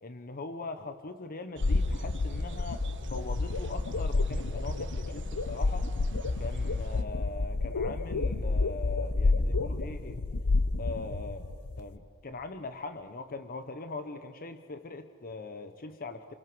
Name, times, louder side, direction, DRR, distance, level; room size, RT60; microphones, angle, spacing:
voice 1, 0.0-5.9 6.4-10.2 10.8-11.4 11.8-16.2, left 3 dB, 40° left, 9 dB, 0.9 m, -41 dB
sound 1, 1.6-11.8, left 3 dB, 85° left, 0.8 m, -30 dB
sound 2, 1.6-7.0, right 2 dB, 55° right, 1.7 m, -47 dB
29.0 x 26.0 x 6.2 m, 2.3 s
head